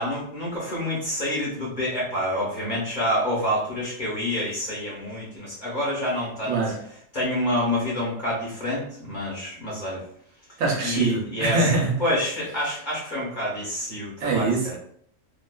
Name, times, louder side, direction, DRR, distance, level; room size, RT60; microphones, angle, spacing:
voice 1, 0.0-6.5 7.1-10.0 10.8-14.7, left 1 dB, 40° left, 0.9 m, -27 dB
voice 2, 6.5-6.9 10.6-12.0 14.2-14.7, right 3 dB, 80° right, 1.1 m, -23 dB
2.7 x 2.2 x 2.2 m
omnidirectional pair, 1.4 m